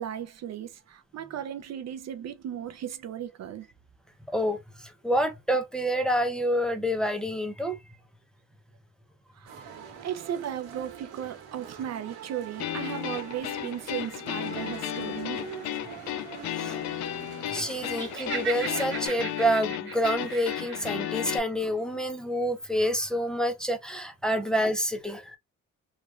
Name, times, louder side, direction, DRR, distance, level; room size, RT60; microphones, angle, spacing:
voice 1, 0.0-3.7 9.4-9.5 10.0-15.4 24.3-24.4, right 10 dB, 60° right, 0.6 m, -36 dB
voice 2, 4.3-7.8 16.6-16.8 17.5-25.4, equal, ahead, 0.7 m, -28 dB
sound 1, 9.4-19.1, right 8 dB, 85° right, 1.2 m, -44 dB
sound 2, 12.6-21.4, left 12 dB, 65° left, 0.5 m, -34 dB
Laughter, 18.0-20.9, right 6 dB, 40° right, 1.3 m, -37 dB
3.0 x 2.5 x 2.4 m
cardioid pair, 90°, 30 cm